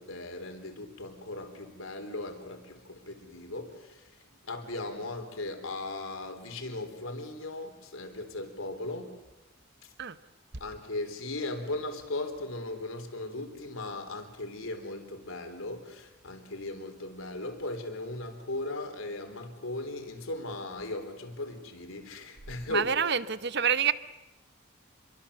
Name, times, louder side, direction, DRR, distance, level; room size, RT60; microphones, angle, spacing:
voice 1, 0.0-9.2 9.8-9.9 10.6-22.9, left 2 dB, 85° left, 3.7 m, -38 dB
voice 2, 22.7-23.9, right 7 dB, 55° right, 0.9 m, -27 dB
27.5 x 23.0 x 6.9 m
head